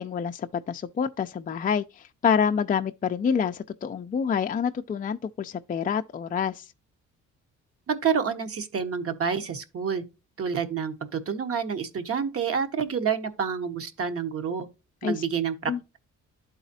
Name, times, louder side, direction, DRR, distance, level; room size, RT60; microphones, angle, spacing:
voice 1, 0.0-6.7 15.0-15.2 15.7-15.8, left 7 dB, 30° left, 0.4 m, -27 dB
voice 2, 7.9-10.0 10.4-14.7 15.0-16.0, right 6 dB, 50° right, 1.1 m, -28 dB
12.0 x 4.0 x 2.7 m
cardioid pair, 90°, 30 cm